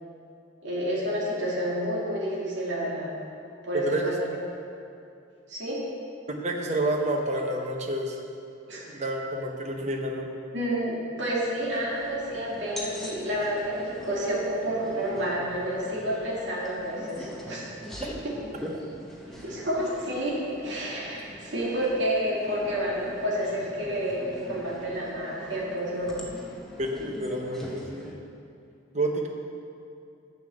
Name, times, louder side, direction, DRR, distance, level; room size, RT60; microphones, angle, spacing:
voice 1, 0.6-3.1 3.6-4.2 5.5-5.8 8.7-8.8 10.5-17.7 18.2-18.3 19.3-26.2, equal, 65° right, -6 dB, 2.2 m, -29 dB
voice 2, 6.3-8.2 8.9-10.3 26.8-28.1 28.9-29.3, right 1 dB, 35° right, 2 dB, 0.8 m, -29 dB
sound 1, 11.6-28.1, equal, ahead, 0.8 m, -43 dB
7.3 x 7.1 x 6.3 m, 2.5 s
head